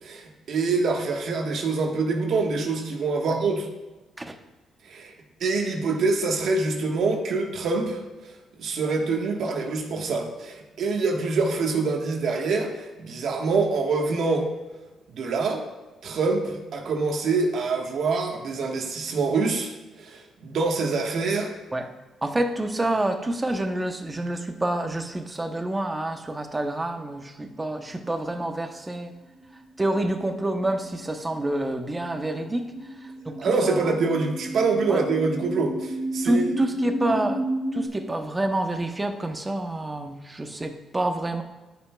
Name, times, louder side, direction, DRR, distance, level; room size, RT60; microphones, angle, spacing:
voice 1, 0.0-3.7 4.8-5.1 5.4-8.0 8.6-14.5 15.1-15.6 16.0-21.5 33.4-36.5, right 4 dB, 70° right, 2 dB, 1.3 m, -25 dB
voice 2, 22.2-29.1 29.8-32.7 33.0-33.9 34.9-35.1 36.2-37.5 37.7-41.4, right 1 dB, 15° right, 6 dB, 0.8 m, -28 dB
sound 1, 29.3-37.9, equal, 10° left, 2.9 m, -33 dB
14.5 x 5.7 x 2.3 m, 1.2 s
cardioid pair, 90°, 0 cm